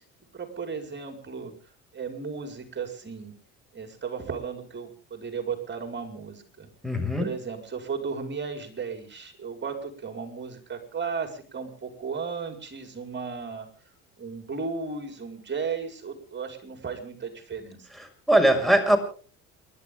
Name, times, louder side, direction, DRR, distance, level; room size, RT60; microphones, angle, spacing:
voice 1, 0.3-1.5 1.9-3.3 3.7-6.7 7.2-13.7 14.2-17.9, right 5 dB, 30° right, 5 dB, 5.4 m, -35 dB
voice 2, 6.8-7.3 18.3-19.0, right 1 dB, ahead, 5 dB, 6.2 m, -20 dB
29.5 x 12.0 x 3.8 m, 0.40 s
hypercardioid pair, 70°, 35 cm